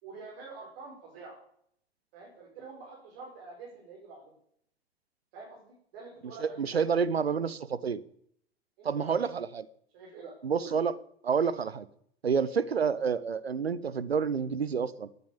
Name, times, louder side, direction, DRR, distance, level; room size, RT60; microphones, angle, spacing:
voice 1, 0.0-1.4 2.1-4.2 5.3-6.9 8.8-9.3 9.9-10.8, right 3 dB, 60° right, -2 dB, 5.3 m, -47 dB
voice 2, 6.4-8.0 8.8-9.6 10.4-11.0 11.2-11.9 12.2-15.1, right 6 dB, 85° right, 18 dB, 0.7 m, -29 dB
17.0 x 9.4 x 7.3 m, 0.69 s
figure-of-eight pair, 75°, 30 cm